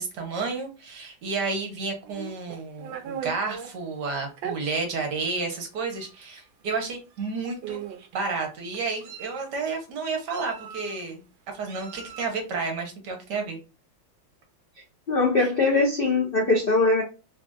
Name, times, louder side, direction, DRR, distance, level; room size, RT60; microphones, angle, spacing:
voice 1, 0.0-7.8 8.1-11.2 11.5-13.6 15.4-15.5, right 4 dB, 60° right, 2 dB, 1.6 m, -31 dB
Meow, 2.0-3.7 4.4-4.6 5.4-5.5 5.9-6.1 7.1-7.3 7.6-8.1 8.7-9.5 10.3-11.0 11.7-12.4, right 8 dB, 90° right, 1.4 m, -38 dB
voice 2, 15.1-17.0, left 3 dB, 90° left, -1 dB, 0.5 m, -21 dB
3.8 x 2.5 x 2.2 m, 0.32 s
omnidirectional pair, 2.1 m